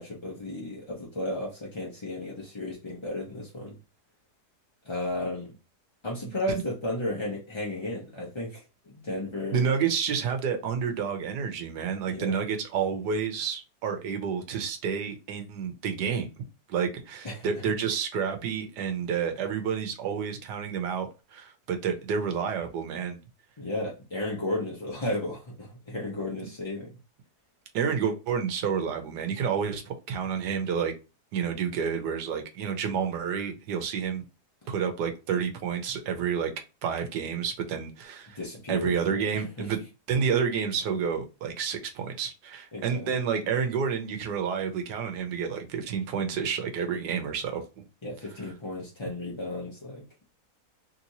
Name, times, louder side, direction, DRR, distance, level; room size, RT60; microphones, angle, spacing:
voice 1, 0.0-3.8 4.8-5.5 6.0-9.7 12.1-12.3 17.2-17.5 23.6-26.9 38.4-39.3 39.6-39.7 42.7-43.1 48.0-50.0, left 1 dB, 35° left, 0.4 m, -34 dB
voice 2, 6.2-6.6 9.5-16.3 16.7-23.2 27.7-30.9 31.3-34.2 34.7-36.5 36.8-38.4 38.7-39.8 40.1-47.9, right 7 dB, 85° right, 1.4 m, -29 dB
3.4 x 2.9 x 2.7 m
omnidirectional pair, 1.8 m